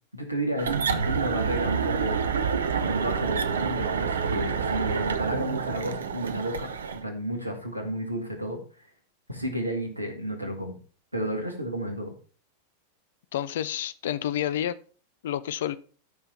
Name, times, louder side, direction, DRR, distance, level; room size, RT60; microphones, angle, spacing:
voice 1, 0.1-2.3 2.8-8.9 9.3-10.8 11.1-12.1, right 1 dB, 85° right, 2.1 m, -32 dB
sound 1, 0.6-7.0, right 6 dB, 65° right, 0.8 m, -28 dB
voice 2, 13.3-14.7 15.2-15.8, left 11 dB, 60° left, 0.5 m, -29 dB
12.0 x 5.6 x 4.4 m
figure-of-eight pair, 90°, 0 cm